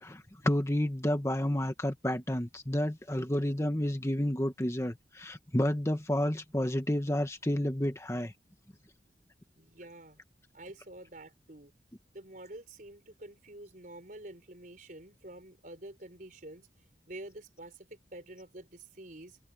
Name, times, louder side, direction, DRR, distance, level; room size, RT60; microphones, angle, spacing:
voice 1, 0.0-8.3, left 1 dB, 15° left, 1.3 m, -30 dB
voice 2, 9.6-10.2 10.5-11.7 12.1-16.7 17.1-19.4, right 1 dB, 50° right, 4.9 m, -48 dB
head